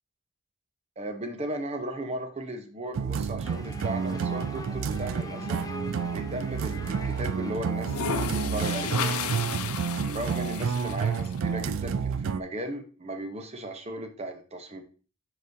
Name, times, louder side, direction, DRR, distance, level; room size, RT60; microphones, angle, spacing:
voice 1, 1.0-5.7 6.1-9.3 10.0-14.8, right 1 dB, 30° right, 6 dB, 0.8 m, -36 dB
sound 1, 2.9-12.4, right 6 dB, 60° right, 0.3 m, -30 dB
sound 2, 3.4-9.5, left 1 dB, 15° left, 0.5 m, -43 dB
sound 3, 6.0-6.3 7.7-11.4, left 7 dB, 80° left, 0.6 m, -34 dB
9.9 x 4.9 x 2.7 m, 0.39 s
head